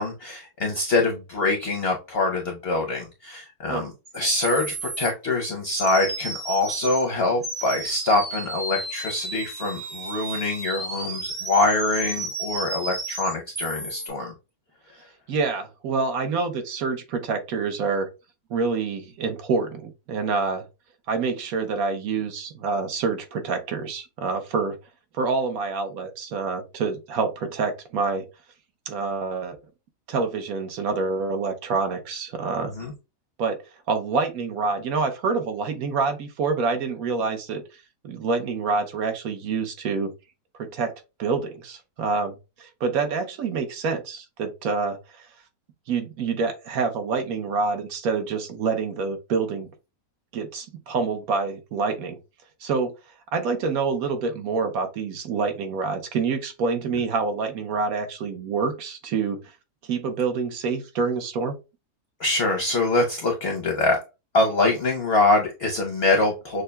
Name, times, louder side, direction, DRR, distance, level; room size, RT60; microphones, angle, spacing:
voice 1, 0.0-14.3 32.8-32.9 62.2-64.0 64.3-66.6, left 2 dB, 55° left, 2 dB, 0.7 m, -24 dB
sound 1, 4.1-4.2 4.4-5.1 5.8-7.0 7.4-14.1, right 2 dB, 35° right, 0.9 m, -33 dB
voice 2, 15.3-18.1 18.5-20.6 21.1-24.8 25.1-28.2 28.9-29.6 30.1-32.7 33.4-33.6 33.9-37.6 38.0-40.1 40.6-40.9 41.2-45.3 45.9-49.7 50.3-52.2 52.6-52.9 53.3-59.4 59.9-61.6, right 4 dB, 65° right, 7 dB, 1.1 m, -27 dB
6.4 x 2.2 x 2.2 m, 0.27 s
omnidirectional pair, 1.8 m